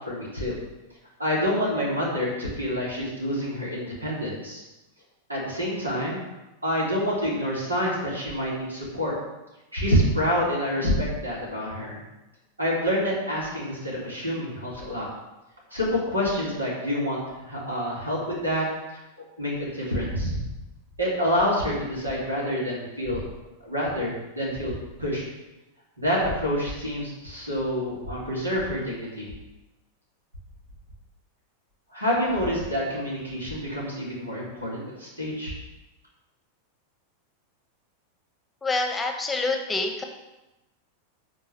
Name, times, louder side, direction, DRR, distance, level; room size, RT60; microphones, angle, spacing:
voice 1, 0.1-0.6 1.2-4.6 5.3-6.2 6.6-9.1 9.7-12.0 12.6-15.1 15.7-18.7 19.4-20.4 21.0-23.2 23.6-24.7 25.0-25.3 26.0-29.3 31.9-35.5, equal, 80° right, -5 dB, 3.8 m, -27 dB
voice 2, 38.6-40.0, left 3 dB, 10° left, 4 dB, 1.1 m, -26 dB
10.0 x 4.7 x 6.8 m, 1.0 s
figure-of-eight pair, 90°, 0 cm